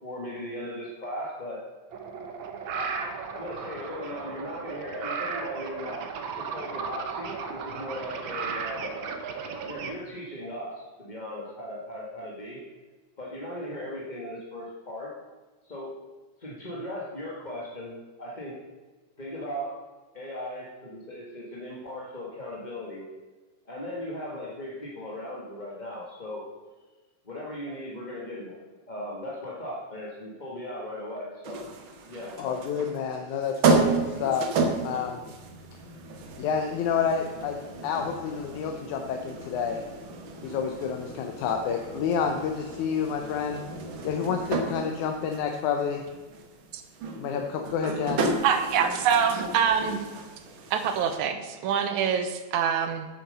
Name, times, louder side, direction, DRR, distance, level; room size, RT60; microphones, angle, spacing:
voice 1, 0.0-1.6 2.7-2.9 3.3-6.0 6.3-9.1 9.6-12.6 13.2-15.1 15.6-15.9 16.4-18.6 19.2-19.8 20.1-23.0 23.6-26.4 27.2-28.6 28.9-31.6 32.1-32.3, left 1 dB, 25° left, -4 dB, 1.0 m, -38 dB
sound 1, 1.9-9.9, right 5 dB, 70° right, 1.1 m, -35 dB
sound 2, 31.4-51.2, right 3 dB, 55° right, 1.6 m, -32 dB
voice 2, 32.4-34.5 34.8-35.3 36.4-39.8 40.4-43.6 44.0-46.0 47.2-48.2, left 7 dB, 85° left, 3 dB, 2.2 m, -29 dB
voice 3, 48.4-50.0 50.7-53.1, right 7 dB, 90° right, 8 dB, 2.4 m, -25 dB
9.0 x 7.9 x 6.7 m, 1.3 s
omnidirectional pair, 3.4 m